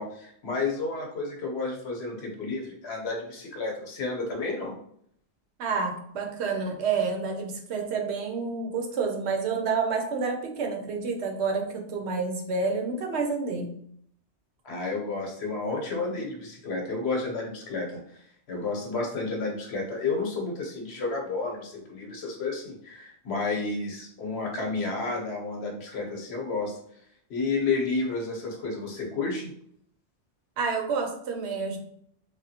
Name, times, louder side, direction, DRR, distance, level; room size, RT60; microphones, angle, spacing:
voice 1, 0.0-4.7 14.6-18.0 18.5-26.8 27.3-29.5, left 3 dB, 75° left, 0 dB, 1.0 m, -31 dB
voice 2, 5.6-13.7 30.6-31.8, right 4 dB, 75° right, 3 dB, 0.9 m, -29 dB
3.4 x 2.2 x 2.7 m, 0.67 s
omnidirectional pair, 1.1 m